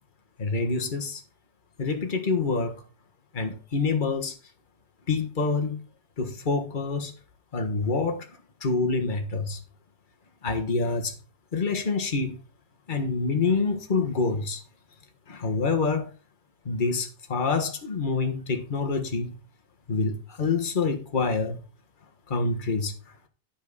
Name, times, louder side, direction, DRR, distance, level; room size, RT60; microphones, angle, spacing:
voice 1, 0.4-1.2 1.8-2.8 3.3-4.4 5.1-5.8 6.2-7.1 7.5-8.3 8.6-9.6 10.4-11.2 11.5-12.4 12.9-14.6 15.3-16.1 16.6-19.4 19.9-21.6 22.3-22.9, left 4 dB, 30° left, 1.5 m, -26 dB
12.0 x 5.2 x 4.1 m
omnidirectional pair, 1.9 m